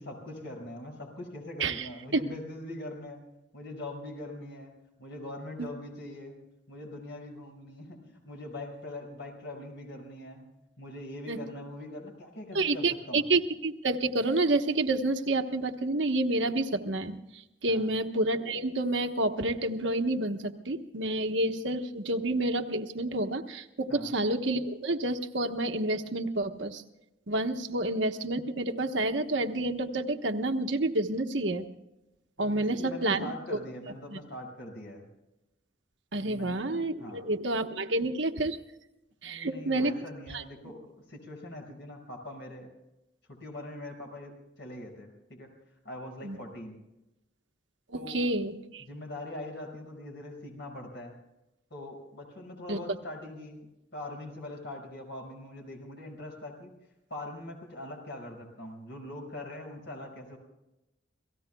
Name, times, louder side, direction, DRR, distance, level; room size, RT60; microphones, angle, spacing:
voice 1, 0.0-3.2 3.5-4.7 5.0-6.4 6.7-10.5 10.8-13.2 17.7-17.9 23.9-24.1 32.4-35.1 36.2-36.6 37.0-37.3 39.2-42.7 43.3-45.5 45.8-46.8 47.9-48.2 48.8-51.1 51.7-53.6 53.9-56.7 57.1-60.4, left 1 dB, 65° left, 2 dB, 5.7 m, -42 dB
voice 2, 1.6-2.2 5.6-5.7 11.3-11.4 12.5-26.8 27.3-31.6 32.4-33.6 34.1-34.2 36.1-38.6 39.2-39.9 40.3-40.4 46.2-46.4 47.9-48.8 52.7-52.8, right 2 dB, 75° right, 6 dB, 1.2 m, -29 dB
29.5 x 18.0 x 2.3 m, 0.93 s
head